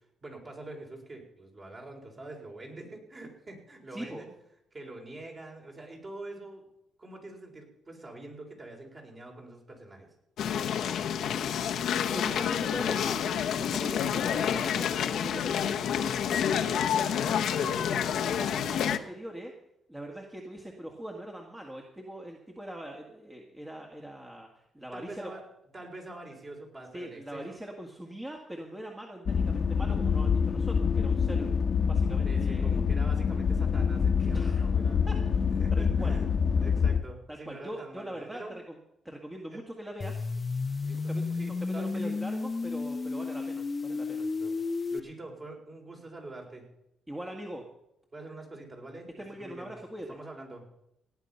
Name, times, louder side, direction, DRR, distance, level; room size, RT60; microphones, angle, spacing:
voice 1, 0.2-4.3 4.7-6.7 7.0-10.1 24.9-25.4 25.7-27.6 32.2-35.0 35.6-38.6 39.5-39.6 40.8-42.2 44.2-44.6 44.9-46.7 48.1-49.7 50.1-50.8, right 2 dB, 35° right, 1 dB, 4.4 m, -45 dB
voice 2, 3.9-4.3 12.0-13.2 13.6-19.5 19.9-25.3 26.9-31.5 31.9-32.8 34.3-34.6 35.1-35.2 35.7-36.2 37.5-38.8 39.0-40.2 40.8-41.2 41.8-44.2 47.1-47.6 49.2-50.1, right 1 dB, 15° right, 1 dB, 1.8 m, -42 dB
sound 1, 10.4-19.0, left 8 dB, 75° left, 0.9 m, -28 dB
sound 2, 29.3-37.0, left 6 dB, 50° left, 1.1 m, -26 dB
sound 3, 40.0-45.0, left 4 dB, 30° left, 0.6 m, -32 dB
17.5 x 9.3 x 5.6 m, 0.81 s
cardioid pair, 90°, 0 cm